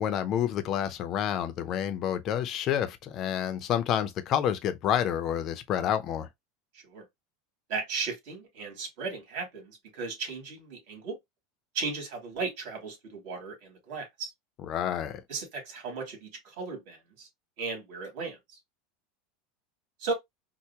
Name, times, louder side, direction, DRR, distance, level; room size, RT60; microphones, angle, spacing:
voice 1, 0.0-6.3 14.7-15.2, left 10 dB, 40° left, 0.6 m, -29 dB
voice 2, 6.7-7.0 7.7-11.2 11.7-14.3 15.3-17.3 17.6-18.4 20.0-20.1, right 4 dB, 65° right, 2.5 m, -36 dB
4.5 x 2.1 x 2.8 m
supercardioid pair, 145°, 0 cm